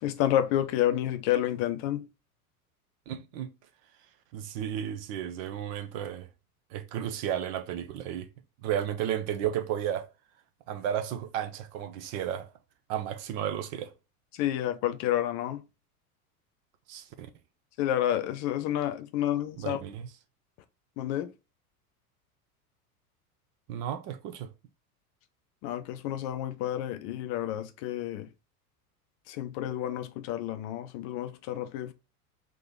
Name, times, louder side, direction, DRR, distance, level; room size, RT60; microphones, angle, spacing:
voice 1, 0.0-2.1 14.3-15.6 17.8-19.8 21.0-21.3 25.6-28.3 29.3-31.9, left 12 dB, 35° left, 0.7 m, -30 dB
voice 2, 3.1-3.5 4.3-6.3 6.7-8.3 8.6-10.1 10.7-12.5 12.9-13.9 16.9-17.3 19.6-20.1 23.7-24.5, right 10 dB, 35° right, 0.7 m, -33 dB
3.8 x 2.9 x 3.5 m
figure-of-eight pair, 85°, 46 cm